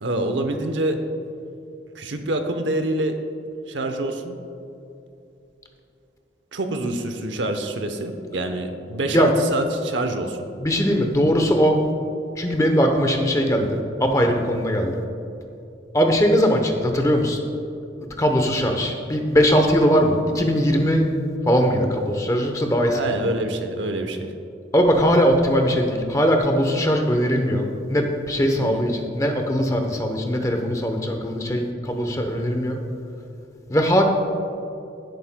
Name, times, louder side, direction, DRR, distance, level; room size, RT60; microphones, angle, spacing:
voice 1, 0.0-1.0 2.0-3.2 3.7-4.3 6.5-10.4 22.9-24.3 28.5-28.9, right 1 dB, 85° right, 6 dB, 0.8 m, -26 dB
voice 2, 10.6-11.8 12.4-15.0 15.9-17.4 18.0-21.1 21.4-23.2 24.7-32.8 33.7-34.0, equal, 15° left, 4 dB, 0.7 m, -20 dB
16.0 x 8.1 x 2.2 m, 2.7 s
head